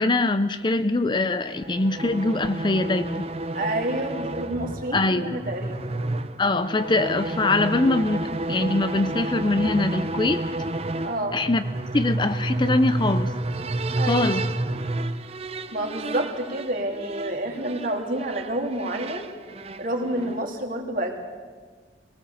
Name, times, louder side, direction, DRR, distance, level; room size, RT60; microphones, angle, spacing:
voice 1, 0.0-3.3 4.9-5.4 6.4-10.4 11.3-11.6 11.9-13.3 14.1-14.4, left 2 dB, 25° left, 11 dB, 0.6 m, -23 dB
sound 1, 1.5-20.5, right 2 dB, 35° right, 0.8 m, -30 dB
voice 2, 3.5-5.9 11.0-11.4 14.0-14.4 15.7-19.3 19.8-21.1, right 1 dB, 50° right, 2 dB, 3.1 m, -29 dB
23.0 x 18.5 x 7.2 m, 1.5 s
head